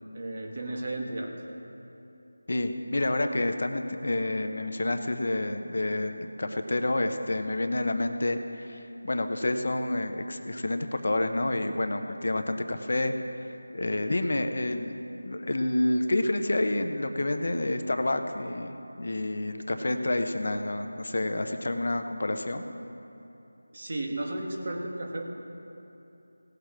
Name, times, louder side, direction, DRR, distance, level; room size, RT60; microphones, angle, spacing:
voice 1, 0.1-1.3 23.7-25.3, right 1 dB, 45° right, 0 dB, 1.7 m, -34 dB
voice 2, 2.5-13.1 13.7-22.6, left 1 dB, 60° left, 7 dB, 0.8 m, -29 dB
17.5 x 6.7 x 6.0 m, 2.9 s
figure-of-eight pair, 170°, 0 cm